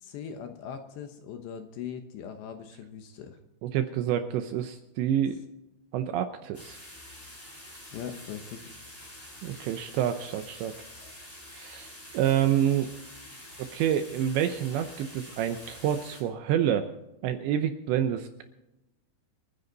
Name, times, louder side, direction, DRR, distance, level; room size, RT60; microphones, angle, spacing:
voice 1, 0.0-3.4 7.9-8.6, left 8 dB, 70° left, 7 dB, 2.9 m, -40 dB
voice 2, 3.6-5.4 5.9-6.8 9.4-10.7 11.5-12.9 13.7-16.9 17.2-18.4, right 10 dB, 80° right, 8 dB, 2.7 m, -28 dB
sound 1, 6.5-16.2, left 1 dB, 10° left, 3.5 m, -47 dB
28.0 x 9.9 x 4.0 m, 0.94 s
omnidirectional pair, 5.8 m